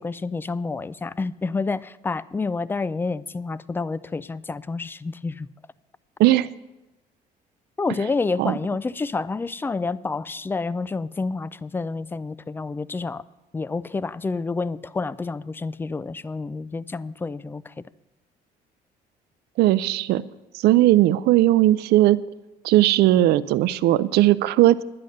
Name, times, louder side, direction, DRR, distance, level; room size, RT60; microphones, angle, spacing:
voice 1, 0.0-5.5 7.8-13.2 13.5-17.7, left 4 dB, 15° left, 18 dB, 0.3 m, -29 dB
voice 2, 6.2-6.5 8.4-8.6 19.6-20.2 20.5-22.2 22.6-24.8, right 15 dB, 75° right, 16 dB, 0.4 m, -18 dB
10.5 x 9.6 x 6.5 m, 1.0 s
cardioid pair, 110°, 17 cm